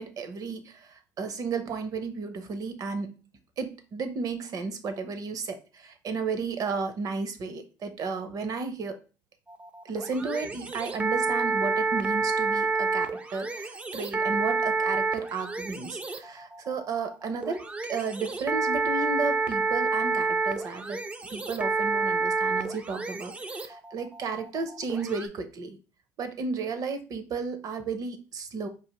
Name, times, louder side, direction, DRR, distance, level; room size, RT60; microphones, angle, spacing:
voice 1, 0.0-3.2 3.6-9.0 9.8-17.6 17.9-21.0 21.3-25.8 26.2-28.7, right 4 dB, 50° right, 8 dB, 0.7 m, -33 dB
sound 1, 9.5-25.3, right 4 dB, 15° right, 0.4 m, -29 dB
4.7 x 2.5 x 3.0 m, 0.33 s
cardioid pair, 125°, 8 cm